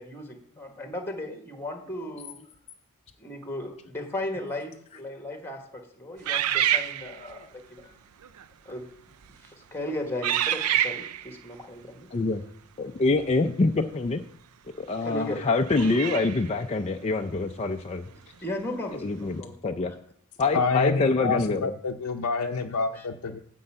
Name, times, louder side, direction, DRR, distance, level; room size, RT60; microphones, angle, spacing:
voice 1, 0.0-2.3 3.2-7.9 8.6-8.9 9.4-12.1 15.0-15.5 18.4-19.7 20.4-20.6 22.9-23.1, left 1 dB, 10° left, 4 dB, 1.5 m, -36 dB
sound 1, 6.2-7.4 8.2-8.4 9.1-9.5 10.2-11.3 14.0-14.1 15.6-16.5, right 11 dB, 90° right, 0.5 m, -27 dB
voice 2, 12.1-12.4 12.8-14.2 14.8-18.0 19.0-19.9 20.4-21.7, left 3 dB, 30° left, 4 dB, 0.4 m, -25 dB
voice 3, 20.5-23.4, left 4 dB, 90° left, 1 dB, 0.6 m, -27 dB
9.6 x 4.6 x 7.7 m, 0.64 s
head